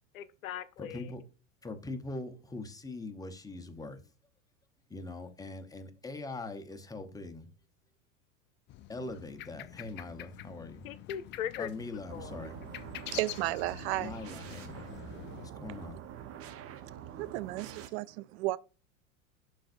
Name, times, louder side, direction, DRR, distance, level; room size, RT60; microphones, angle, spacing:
voice 1, 0.1-1.1 10.8-11.7 12.1-12.5, left 10 dB, 85° left, 0.7 m, -39 dB
voice 2, 0.8-1.2 1.6-4.0 4.9-7.5 8.9-10.9 11.6-12.6 14.0-15.0 15.6-16.0, left 2 dB, 10° left, 1.0 m, -42 dB
sound 1, 8.7-15.5, left 13 dB, 30° left, 0.4 m, -47 dB
sound 2, 12.1-17.9, right 9 dB, 35° right, 0.9 m, -46 dB
voice 3, 13.1-14.2 17.2-18.6, right 18 dB, 55° right, 0.4 m, -33 dB
11.5 x 3.9 x 2.6 m
hypercardioid pair, 100°, 40 cm